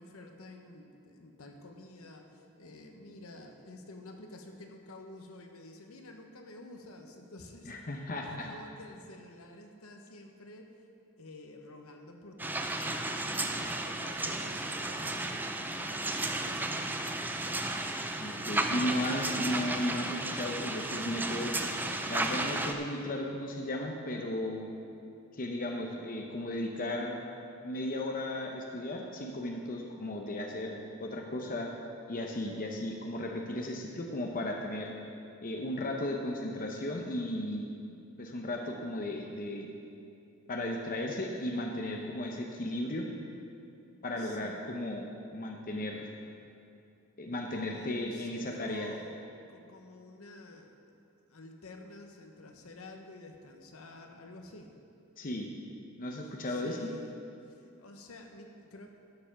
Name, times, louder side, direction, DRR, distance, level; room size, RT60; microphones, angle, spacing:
voice 1, 0.0-7.9 8.2-10.7 11.2-17.0 44.2-44.6 47.5-50.7 51.3-54.7 56.5-57.1 57.5-58.9, left 2 dB, 70° left, 4 dB, 1.0 m, -50 dB
voice 2, 7.6-8.5 18.2-21.5 22.0-24.7 25.3-27.2 27.6-31.7 32.1-34.9 35.4-37.7 38.2-39.7 40.5-43.1 44.0-46.1 47.2-48.9 55.2-55.5 56.0-56.8, left 1 dB, 40° left, 1 dB, 0.8 m, -35 dB
sound 1, 12.4-22.7, right 2 dB, 10° right, 0.5 m, -34 dB
12.0 x 6.8 x 5.8 m, 2.5 s
head